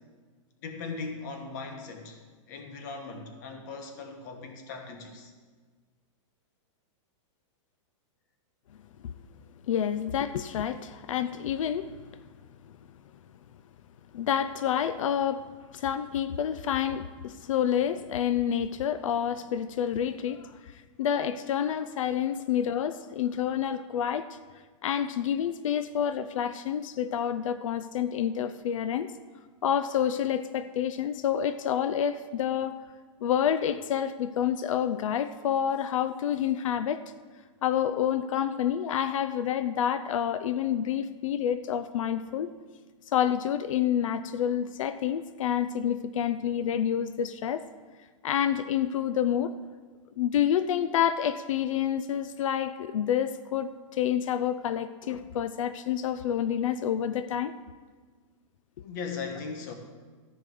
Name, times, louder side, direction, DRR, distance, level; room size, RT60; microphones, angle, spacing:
voice 1, 0.6-2.2 2.5-5.3 58.8-59.8, left 4 dB, 35° left, 4 dB, 1.4 m, -38 dB
voice 2, 9.7-12.0 12.7-12.8 14.1-15.5 15.7-24.4 24.8-29.1 29.6-32.8 33.2-37.0 37.6-42.5 43.1-47.6 48.2-49.5 50.2-57.5, left 9 dB, 90° left, 12 dB, 0.5 m, -28 dB
14.0 x 5.0 x 7.7 m, 1.5 s
supercardioid pair, 175°, 16 cm